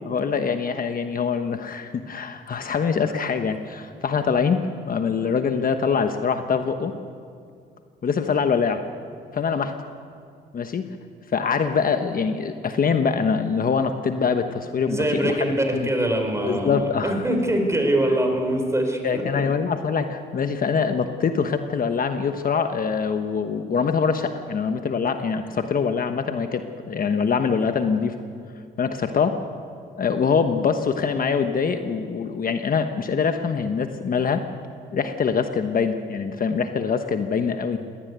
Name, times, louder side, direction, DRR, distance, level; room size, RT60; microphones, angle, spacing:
voice 1, 0.1-6.9 8.0-8.8 9.3-9.7 10.5-10.9 11.3-15.4 15.7-15.9 16.4-17.2 19.0-28.1 28.8-29.4 30.0-34.4 34.9-37.8, left 6 dB, 45° left, 7 dB, 1.2 m, -24 dB
voice 2, 14.9-19.2, right 1 dB, 15° right, 4 dB, 4.2 m, -23 dB
18.5 x 18.0 x 9.5 m, 2.3 s
cardioid pair, 90°, 20 cm